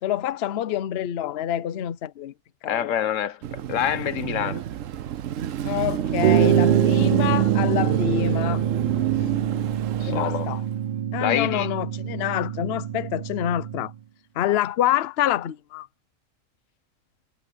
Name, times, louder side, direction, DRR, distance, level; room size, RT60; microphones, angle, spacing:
voice 1, 0.0-2.3 2.6-2.9 5.6-8.6 10.1-10.6 11.1-13.9 14.4-15.9, left 11 dB, 60° left, 0.9 m, -27 dB
voice 2, 2.7-4.6 10.0-10.5 11.2-11.7, left 10 dB, 80° left, 1.1 m, -26 dB
Car passing by / Traffic noise roadway noise / Engine, 3.4-10.8, right 10 dB, 80° right, 1.1 m, -28 dB
sound 1, 6.2-13.9, right 9 dB, 50° right, 0.6 m, -24 dB
omnidirectional pair, 1.3 m